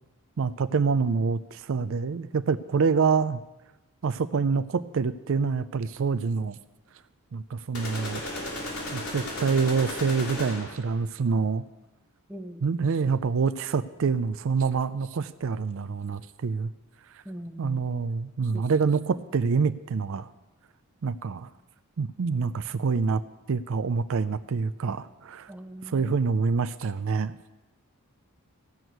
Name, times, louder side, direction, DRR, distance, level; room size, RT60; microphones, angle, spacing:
voice 1, 0.4-3.4 4.0-6.6 7.3-8.2 8.9-11.6 12.6-16.7 17.1-17.2 17.6-20.3 21.0-21.5 22.0-23.2 23.5-25.5 25.8-27.3, right 5 dB, 60° right, 13 dB, 0.4 m, -26 dB
sound 1, 7.7-10.9, left 1 dB, 75° left, 3.5 m, -34 dB
voice 2, 12.3-12.6 17.2-17.8 18.5-18.7 25.5-26.1, equal, 5° right, 6 dB, 0.7 m, -40 dB
14.5 x 6.2 x 9.2 m, 1.0 s
head